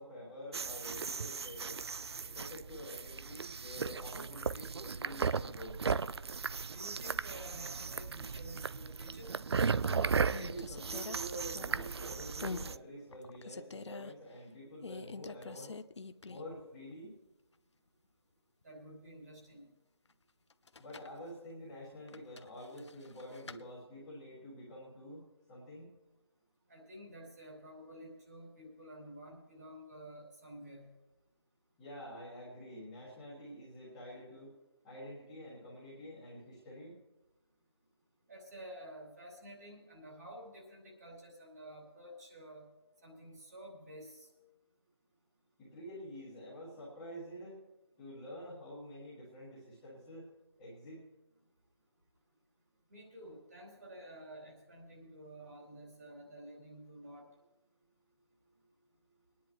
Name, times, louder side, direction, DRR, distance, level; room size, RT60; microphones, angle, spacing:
voice 1, 0.0-1.8 2.3-5.8 10.3-15.7 16.3-17.1 20.8-25.2 25.5-25.8 31.8-34.5 34.8-36.9 45.6-47.5 48.0-50.2 50.6-51.0, equal, 5° left, -11 dB, 1.4 m, -48 dB
sound 1, 0.5-12.8, right 5 dB, 65° right, 0.4 m, -36 dB
voice 2, 6.7-9.4 18.6-19.7 26.7-30.9 38.3-42.7 43.0-44.3 52.9-57.3, equal, 35° right, -2 dB, 3.0 m, -51 dB
sound 2, 9.0-9.4 9.8-12.0 12.4-12.7 13.1-14.1 14.8-16.6 16.9-17.0 20.5-21.2 22.1-23.6, left 4 dB, 80° left, 0.7 m, -45 dB
22.5 x 10.0 x 3.0 m, 1.1 s
figure-of-eight pair, 175°, 14 cm